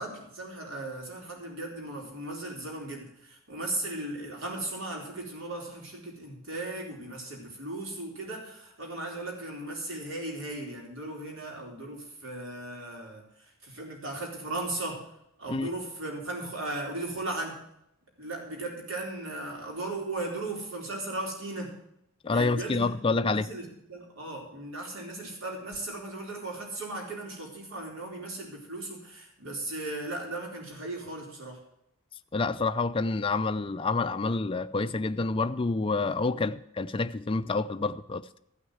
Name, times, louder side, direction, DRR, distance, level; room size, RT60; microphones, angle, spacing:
voice 1, 0.0-15.1 15.4-17.6 18.2-21.8 22.3-31.6, right 2 dB, 70° right, 4.1 m, -37 dB
voice 2, 22.2-23.5 32.3-38.4, left 3 dB, 25° left, 0.4 m, -28 dB
14.5 x 6.4 x 7.8 m
head